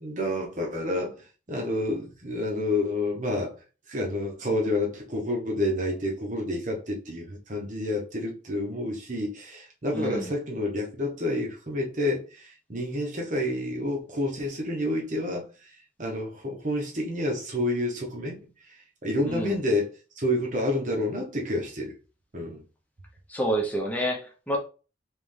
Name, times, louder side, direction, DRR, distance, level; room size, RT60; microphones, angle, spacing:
voice 1, 0.0-3.6 3.9-15.7 16.0-21.9 22.3-22.6, left 1 dB, 45° right, 1.2 m, -29 dB
voice 2, 9.9-10.3 19.2-19.6 23.3-24.6, right 1 dB, 10° left, 0.9 m, -28 dB
3.7 x 3.4 x 3.4 m
head